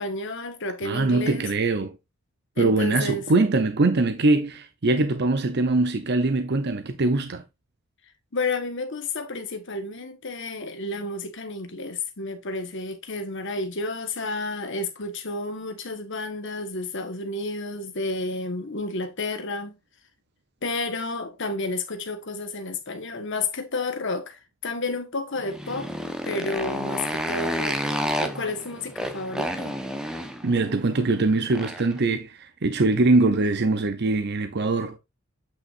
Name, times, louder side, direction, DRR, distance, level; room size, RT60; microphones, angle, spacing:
voice 1, 0.0-1.5 2.6-3.2 8.3-19.8 20.6-25.9 26.2-27.9 28.2-29.8, left 2 dB, 60° left, 1.4 m, -31 dB
voice 2, 0.8-1.9 2.6-7.4 30.4-35.0, right 2 dB, 55° right, 0.7 m, -22 dB
Motorcycle, 25.4-32.0, equal, 5° right, 1.0 m, -30 dB
8.6 x 5.9 x 2.6 m
head